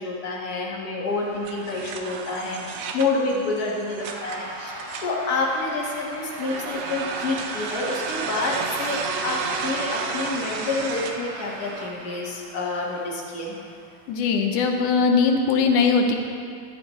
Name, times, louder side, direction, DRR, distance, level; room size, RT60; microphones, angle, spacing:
voice 1, 0.0-13.6, left 3 dB, 40° left, -3 dB, 1.5 m, -28 dB
sound 1, 1.1-11.9, right 6 dB, 75° right, 1.5 m, -34 dB
sound 2, 4.0-14.1, right 1 dB, 45° right, 2.3 m, -37 dB
voice 2, 14.1-16.2, left 5 dB, 80° left, 3 dB, 2.2 m, -20 dB
13.5 x 10.5 x 3.2 m, 2.3 s
omnidirectional pair, 3.5 m